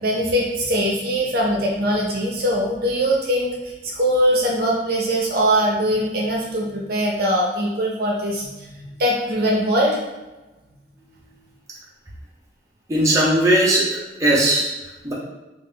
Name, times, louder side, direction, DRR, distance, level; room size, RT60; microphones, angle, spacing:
voice 1, 0.0-3.5 3.8-10.0, equal, 60° right, -2 dB, 0.6 m, -21 dB
voice 2, 12.9-14.7 15.0-15.1, right 1 dB, 15° right, -6 dB, 0.6 m, -18 dB
2.5 x 2.4 x 3.6 m, 1.1 s
head